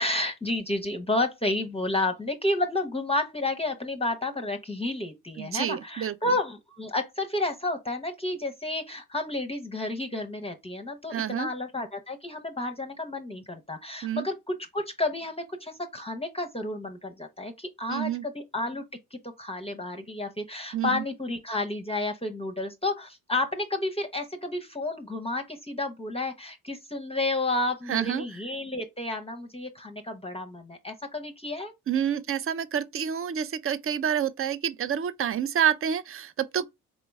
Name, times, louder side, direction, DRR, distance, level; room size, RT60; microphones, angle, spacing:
voice 1, 0.0-18.8 19.1-31.7, left 2 dB, 15° left, 0.7 m, -31 dB
voice 2, 5.4-6.1 11.1-11.5 14.0-14.3 17.9-18.2 20.7-21.0 27.9-28.2 31.9-36.7, right 9 dB, 35° right, 0.5 m, -28 dB
4.1 x 2.9 x 3.3 m
hypercardioid pair, 45°, 38 cm